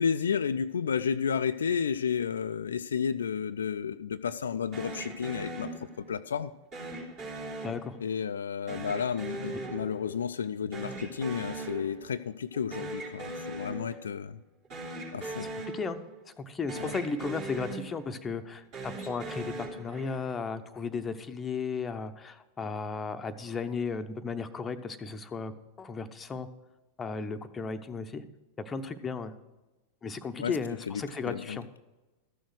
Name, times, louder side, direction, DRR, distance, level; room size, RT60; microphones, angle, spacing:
voice 1, 0.0-6.5 8.0-14.4 15.1-15.5 16.8-17.0 30.4-30.6 30.9-31.6, left 7 dB, 70° left, 11 dB, 0.3 m, -32 dB
sound 1, 4.7-6.2 6.7-8.3 8.7-10.5 10.7-12.2 12.5-14.2 14.6-16.4 16.7-18.3 18.6-20.4, right 2 dB, 40° right, 3.3 m, -40 dB
voice 2, 7.6-8.0 15.4-16.0 16.4-25.5 25.8-26.5 27.0-28.2 28.7-29.3 30.0-31.7, left 4 dB, 20° left, 8 dB, 0.8 m, -35 dB
13.5 x 6.4 x 6.3 m, 1.1 s
figure-of-eight pair, 90°, 0 cm